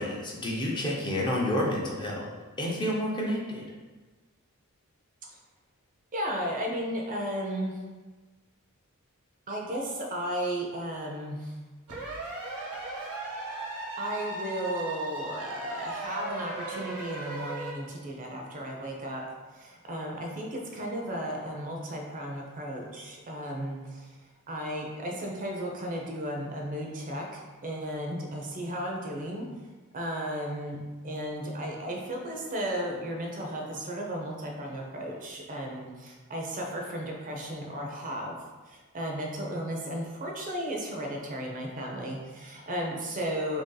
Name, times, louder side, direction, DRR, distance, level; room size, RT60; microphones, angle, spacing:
voice 1, 0.0-2.3 2.6-3.6, left 1 dB, 20° left, -3 dB, 0.5 m, -29 dB
voice 2, 6.1-7.8 9.5-11.5 14.0-19.2 19.5-24.1 24.5-29.5 29.9-38.4 38.7-43.6, equal, 35° right, 0 dB, 0.5 m, -34 dB
sound 1, 11.9-17.7, right 3 dB, 85° right, 1.1 m, -37 dB
2.9 x 2.7 x 3.8 m, 1.3 s
head